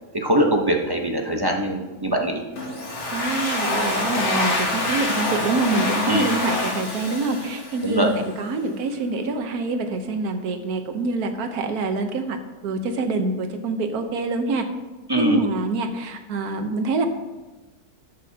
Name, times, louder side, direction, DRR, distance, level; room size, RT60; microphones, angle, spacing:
voice 1, 0.1-2.4 6.1-6.3 7.8-8.1 15.1-15.4, right 1 dB, 20° right, 1 dB, 0.7 m, -22 dB
Domestic sounds home sounds, 2.6-8.2, left 2 dB, 50° left, 1.9 m, -26 dB
voice 2, 3.1-12.4 12.6-14.7 15.2-17.1, right 3 dB, 75° right, 7 dB, 1.4 m, -25 dB
13.0 x 8.8 x 2.8 m, 1.2 s
omnidirectional pair, 1.6 m